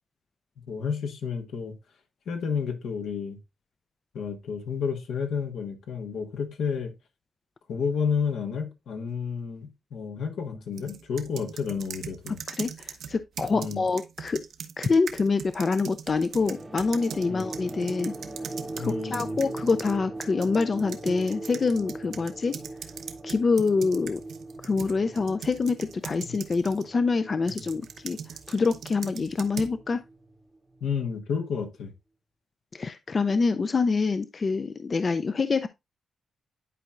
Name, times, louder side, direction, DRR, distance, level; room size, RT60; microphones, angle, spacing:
voice 1, 0.7-1.7 2.3-3.4 4.1-6.9 7.7-12.4 13.5-13.8 17.3-17.4 18.7-19.4 26.3-26.4 27.5-27.6 30.8-31.9, left 6 dB, 85° left, 1.4 m, -31 dB
sound 1, 10.8-19.9 20.2-26.9 27.5-29.8, right 7 dB, 75° right, 0.7 m, -41 dB
voice 2, 12.6-14.4 14.8-18.1 18.8-22.6 23.2-24.2 24.6-28.2 28.5-30.0 32.7-35.7, left 4 dB, 35° left, 0.4 m, -26 dB
sound 2, 16.2-31.1, right 2 dB, 15° right, 0.8 m, -41 dB
11.0 x 4.5 x 2.4 m
cardioid pair, 110°, 0 cm